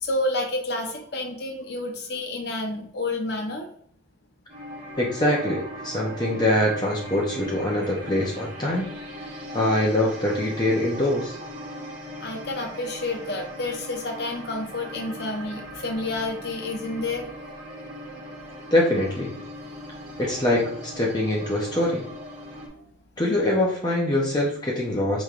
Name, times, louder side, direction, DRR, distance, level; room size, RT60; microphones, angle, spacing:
voice 1, 0.0-3.7 12.2-17.2, left 2 dB, 55° left, 2 dB, 0.8 m, -29 dB
sound 1, 4.5-22.7, equal, 40° right, 1.4 m, -39 dB
voice 2, 5.0-8.9 9.5-11.4 18.7-19.3 20.2-22.1 23.2-25.2, left 1 dB, 20° left, -3 dB, 0.6 m, -23 dB
5.0 x 3.0 x 2.5 m, 0.65 s
head